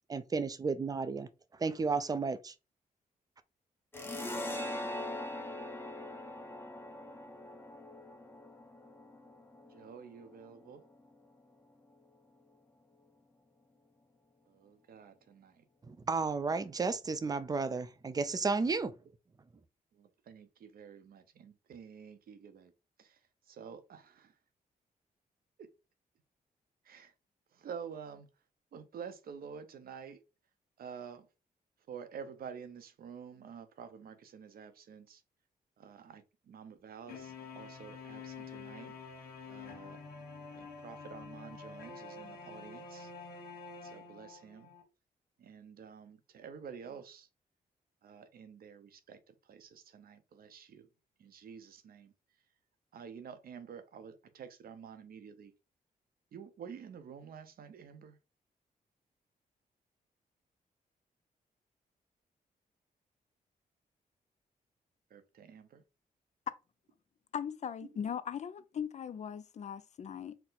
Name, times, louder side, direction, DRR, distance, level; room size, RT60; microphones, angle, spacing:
voice 1, 0.1-1.3 1.6-2.5 15.9-18.9, right 4 dB, 25° right, 0.4 m, -33 dB
sound 1, 3.9-11.1, left 1 dB, 15° left, 0.7 m, -42 dB
voice 2, 9.7-10.8 14.5-15.6 19.9-22.7 23.0-24.4 25.6-25.7 26.8-27.1 27.5-28.3 28.7-30.2 30.8-31.3 31.9-35.2 35.8-38.9 39.5-40.0 40.5-43.1 43.8-44.7 45.4-47.3 48.0-50.9 51.2-52.1 52.9-55.5 56.3-58.2 65.1-65.8 67.8-67.9, right 7 dB, 70° right, 0.7 m, -49 dB
sound 2, 37.1-44.8, left 4 dB, 85° left, 1.2 m, -48 dB
voice 3, 67.3-70.4, left 8 dB, 50° left, 0.4 m, -39 dB
4.4 x 2.1 x 4.0 m
cardioid pair, 90°, 16 cm